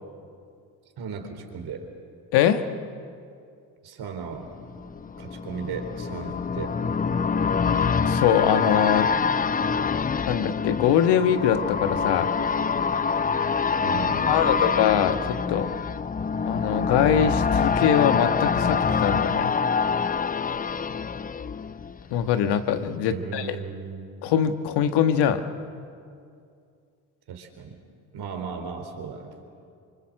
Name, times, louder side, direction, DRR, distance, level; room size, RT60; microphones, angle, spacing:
voice 1, 1.0-1.9 3.8-4.5 5.2-6.9 13.8-14.6 23.1-24.1 27.3-27.8 28.1-29.3, right 6 dB, 65° right, 5 dB, 4.1 m, -36 dB
voice 2, 2.3-2.7 8.1-9.1 10.3-12.3 14.3-15.7 16.5-19.5 22.1-23.6 24.2-25.4, left 9 dB, 70° left, 8 dB, 1.6 m, -22 dB
sound 1, 4.5-22.3 22.6-22.7, left 5 dB, 20° left, 0.6 m, -25 dB
26.5 x 24.5 x 7.6 m, 2.4 s
supercardioid pair, 65°, 41 cm